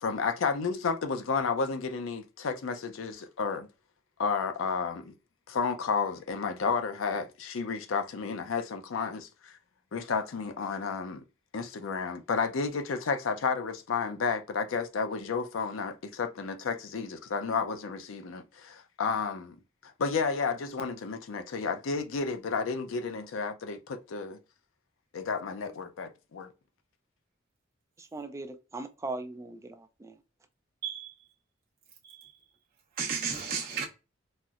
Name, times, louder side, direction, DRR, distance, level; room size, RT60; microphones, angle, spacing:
voice 1, 0.0-3.7 4.2-5.1 5.5-9.6 9.9-11.2 11.5-19.6 19.8-24.4 25.1-26.5, left 5 dB, 80° left, 0.5 m, -32 dB
voice 2, 28.0-30.2, right 2 dB, 15° right, 0.3 m, -39 dB
voice 3, 30.8-31.3 32.0-32.3 33.0-33.8, right 6 dB, 45° right, 0.9 m, -34 dB
4.1 x 2.0 x 2.4 m
head